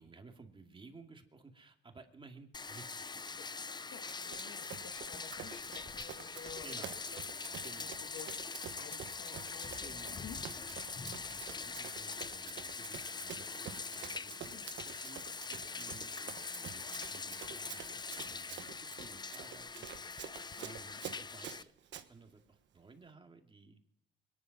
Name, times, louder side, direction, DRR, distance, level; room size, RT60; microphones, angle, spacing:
voice 1, 0.0-3.5 6.6-7.0 7.6-8.0 9.8-20.3 20.6-21.7 22.1-23.8, right 4 dB, 25° right, 4 dB, 2.4 m, -56 dB
Bathtub (filling or washing), 2.5-21.6, left 4 dB, 20° left, 0.5 m, -43 dB
voice 2, 3.9-7.2 7.6-8.3 8.8-10.4 14.5-14.8 18.6-18.8 20.6-20.7, left 7 dB, 75° left, 7 dB, 1.9 m, -52 dB
Run, 4.1-22.1, right 9 dB, 65° right, 1.2 m, -49 dB
22.0 x 11.0 x 5.9 m, 0.79 s
cardioid pair, 90°, 20 cm